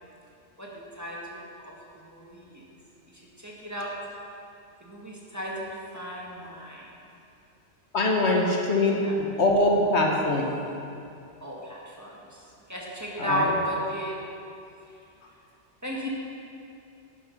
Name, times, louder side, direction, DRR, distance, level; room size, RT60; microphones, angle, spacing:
voice 1, 0.6-1.7 2.0-2.6 3.4-3.9 4.8-6.9 8.4-8.5 9.0-9.1 11.4-12.1 12.7-14.2 15.8-16.1, equal, 15° right, -4 dB, 1.7 m, -33 dB
voice 2, 7.9-10.5 13.2-13.5, left 2 dB, 70° left, 0 dB, 1.5 m, -23 dB
11.0 x 8.9 x 5.4 m, 2.6 s
omnidirectional pair, 1.2 m